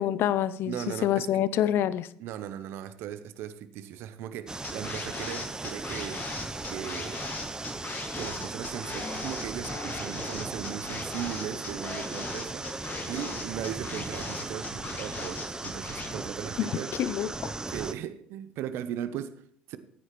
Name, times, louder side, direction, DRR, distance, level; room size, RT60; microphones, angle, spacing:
voice 1, 0.0-2.1 16.6-16.7 17.0-17.6, left 11 dB, 60° left, 0.5 m, -27 dB
voice 2, 0.7-1.4 2.2-6.2 6.7-7.2 8.2-16.9 17.7-19.8, right 10 dB, 65° right, 0.8 m, -38 dB
sound 1, 4.5-17.9, right 2 dB, 15° right, 0.7 m, -37 dB
sound 2, 4.6-16.1, left 4 dB, 40° left, 1.9 m, -38 dB
sound 3, 6.5-16.2 16.5-16.7, right 5 dB, 90° right, 3.2 m, -57 dB
14.5 x 9.6 x 3.1 m
hypercardioid pair, 65°, 4 cm